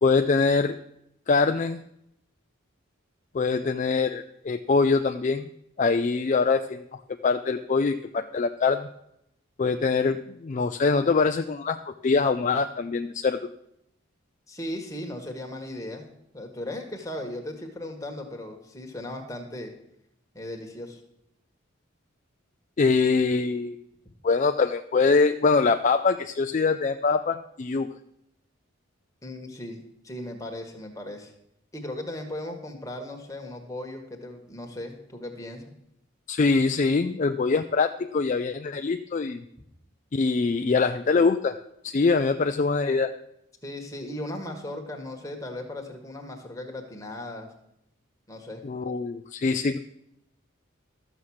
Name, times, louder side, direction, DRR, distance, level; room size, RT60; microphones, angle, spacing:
voice 1, 0.0-0.8 1.3-1.8 3.3-5.5 5.8-6.8 7.2-8.9 9.6-13.5 22.8-23.8 24.2-27.9 36.3-39.4 40.1-41.5 41.8-43.1 48.6-49.8, left 4 dB, 35° left, 8 dB, 0.4 m, -23 dB
voice 2, 14.5-16.1 16.3-19.7 20.3-21.0 29.2-31.3 31.7-35.6 43.6-47.5 48.3-48.6, left 1 dB, 15° left, 2 dB, 1.5 m, -37 dB
13.0 x 7.2 x 6.3 m, 0.79 s
head